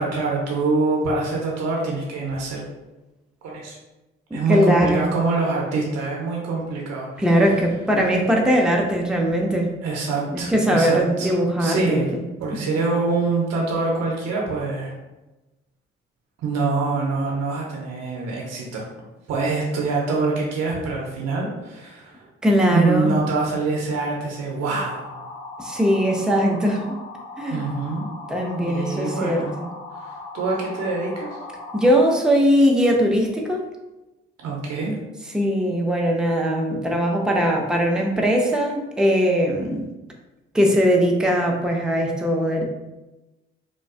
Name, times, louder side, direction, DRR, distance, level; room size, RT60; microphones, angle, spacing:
voice 1, 0.0-2.6 3.4-3.8 4.3-7.2 9.8-12.1 12.4-14.9 16.4-18.9 19.3-22.3 22.7-25.1 27.5-28.0 28.6-29.5 30.0-31.4 34.4-35.0, right 3 dB, 60° right, -2 dB, 0.6 m, -25 dB
voice 2, 4.3-5.1 7.2-9.7 10.3-12.2 12.5-12.6 22.4-23.1 25.6-27.0 27.4-27.7 28.3-29.5 31.7-33.6 35.3-39.9 40.5-42.6, equal, 5° right, 0 dB, 0.5 m, -20 dB
sound 1, 25.0-32.0, left 2 dB, 80° left, 0.4 m, -38 dB
2.4 x 2.2 x 2.4 m, 1.0 s
hypercardioid pair, 45°, 29 cm